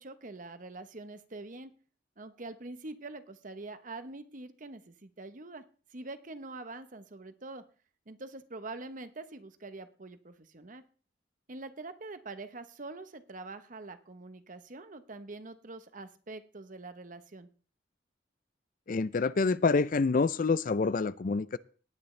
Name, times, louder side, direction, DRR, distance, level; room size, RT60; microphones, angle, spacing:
voice 1, 0.0-1.7 2.2-5.6 5.9-7.6 8.1-10.8 11.5-17.5, right 2 dB, 45° right, 10 dB, 1.0 m, -44 dB
voice 2, 18.9-21.6, left 4 dB, 50° left, 17 dB, 0.4 m, -27 dB
18.0 x 9.6 x 3.3 m, 0.40 s
head